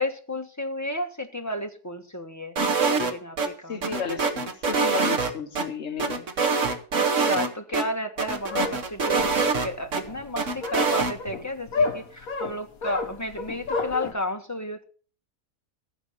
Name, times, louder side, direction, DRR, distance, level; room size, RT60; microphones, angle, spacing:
voice 1, 0.0-2.5 3.0-3.8 7.0-14.8, left 1 dB, 10° left, 1.4 m, -32 dB
sound 1, 2.6-3.5 3.8-5.6 6.0-7.5 7.7-7.8 8.2-10.0 10.4-11.1, right 4 dB, 50° right, 1.7 m, -24 dB
voice 2, 3.7-6.2, left 6 dB, 45° left, 1.7 m, -33 dB
sound 2, 8.2-14.1, left 4 dB, 60° left, 2.0 m, -31 dB
14.5 x 7.4 x 6.7 m
omnidirectional pair, 1.7 m